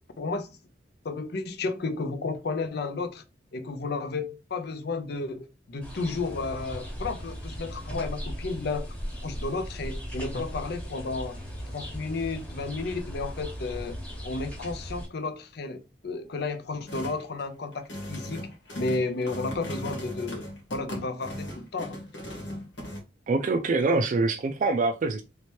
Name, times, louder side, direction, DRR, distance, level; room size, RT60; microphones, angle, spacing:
voice 1, 0.2-0.5 1.0-3.2 3.5-8.9 9.2-11.4 11.7-14.0 14.2-18.5 18.7-20.4 20.7-22.0, left 3 dB, 60° left, 0.5 m, -32 dB
sound 1, 5.8-15.1, equal, 10° left, 1.1 m, -38 dB
sound 2, 16.9-17.2 17.7-23.0, equal, 90° left, 1.5 m, -37 dB
voice 2, 23.3-25.2, right 3 dB, 45° right, 0.4 m, -24 dB
3.2 x 2.9 x 3.0 m
head